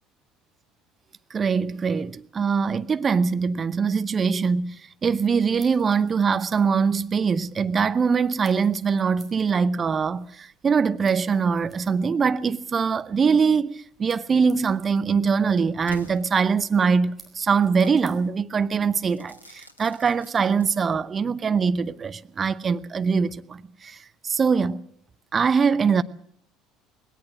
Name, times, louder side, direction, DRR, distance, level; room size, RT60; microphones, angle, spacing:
voice 1, 1.3-24.8 25.3-26.0, right 5 dB, 30° right, 0.8 m, -23 dB
sound 1, 5.0-19.6, right 3 dB, 15° right, 5.2 m, -58 dB
Crackle / Fireworks, 15.9-17.0 17.8-18.1 19.1-21.1, left 1 dB, 85° left, 1.3 m, -47 dB
20.0 x 18.0 x 7.6 m
figure-of-eight pair, 60°, 0 cm